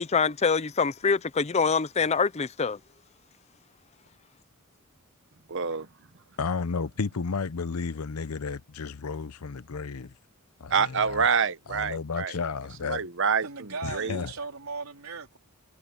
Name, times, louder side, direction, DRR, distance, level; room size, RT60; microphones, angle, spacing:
voice 1, 0.0-2.8, left 5 dB, 30° left, 0.5 m, -25 dB
voice 2, 5.5-5.9 10.7-12.3 12.8-14.3, right 6 dB, 60° right, 1.1 m, -27 dB
voice 3, 6.4-10.1 10.6-11.3 11.7-13.0 13.8-14.3, left 5 dB, 90° left, 0.7 m, -32 dB
voice 4, 13.4-15.4, right 4 dB, 80° right, 3.9 m, -37 dB
head